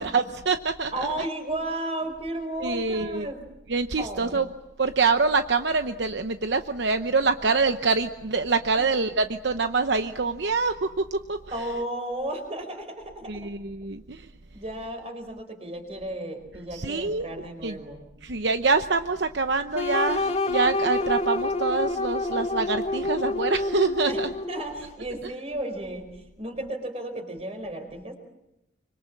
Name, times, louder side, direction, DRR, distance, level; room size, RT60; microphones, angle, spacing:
voice 1, 0.0-0.9 2.6-3.3 3.7-4.5 4.8-11.4 13.3-14.3 16.7-17.8 18.2-24.3, right 4 dB, 65° right, 8 dB, 0.9 m, -25 dB
voice 2, 0.9-3.4 4.0-4.4 8.8-8.9 11.5-13.5 14.5-18.0 24.1-28.2, right 1 dB, 35° right, 6 dB, 4.8 m, -34 dB
sound 1, 19.7-24.7, left 2 dB, 35° left, 2.5 m, -27 dB
25.5 x 25.0 x 7.4 m, 0.92 s
head